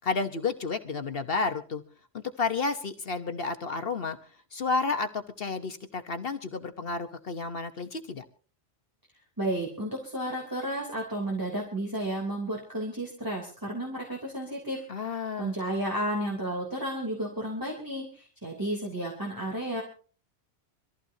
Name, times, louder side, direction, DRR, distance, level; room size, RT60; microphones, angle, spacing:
voice 1, 0.0-1.8 2.1-4.2 4.5-8.2 14.9-15.6, left 4 dB, 55° left, 9 dB, 1.3 m, -31 dB
voice 2, 9.4-14.8 15.1-19.8, right 1 dB, 15° right, -1 dB, 3.3 m, -32 dB
24.5 x 15.0 x 2.7 m, 0.40 s
omnidirectional pair, 1.2 m